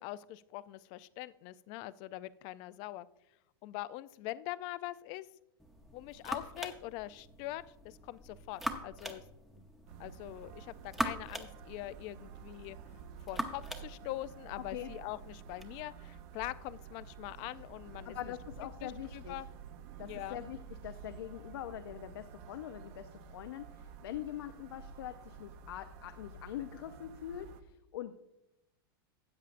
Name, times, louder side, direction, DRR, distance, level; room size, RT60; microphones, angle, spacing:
voice 1, 0.0-3.1 3.6-5.3 5.9-9.2 9.5-9.6 10.0-12.8 13.3-18.3 18.8-19.5 20.0-20.4, left 16 dB, 35° left, 16 dB, 0.3 m, -43 dB
sound 1, 5.6-15.7, equal, ahead, 0.7 m, -43 dB
sound 2, 9.9-27.6, right 6 dB, 45° right, 0.7 m, -51 dB
voice 2, 18.0-19.3 20.0-20.6 20.8-28.1, left 12 dB, 80° left, 8 dB, 0.6 m, -43 dB
13.5 x 8.5 x 2.5 m, 0.87 s
supercardioid pair, 155°, 12 cm